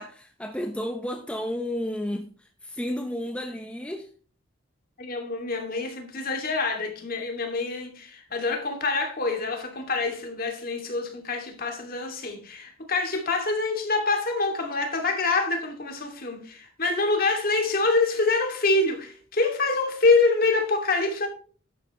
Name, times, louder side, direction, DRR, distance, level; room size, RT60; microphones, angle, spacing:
voice 1, 0.0-4.1, left 1 dB, 5° left, 0.8 m, -32 dB
voice 2, 5.0-21.3, left 3 dB, 45° left, 2.5 m, -26 dB
11.5 x 9.0 x 3.1 m
head